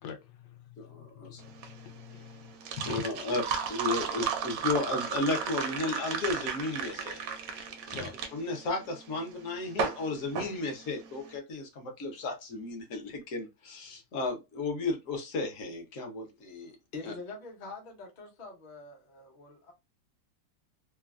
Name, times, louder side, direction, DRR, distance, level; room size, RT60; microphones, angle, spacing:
voice 1, 0.0-3.2 7.9-8.1, left 8 dB, 80° left, 1.2 m, -45 dB
voice 2, 0.8-1.4 2.9-3.4 3.7-7.2 7.5-16.7 17.0-17.1, left 3 dB, 55° left, 1.1 m, -34 dB
sound 1, 1.4-11.3, right 6 dB, 70° right, 0.9 m, -34 dB
voice 3, 16.9-19.7, left 3 dB, 40° left, 0.8 m, -44 dB
3.1 x 2.2 x 2.3 m
omnidirectional pair, 1.8 m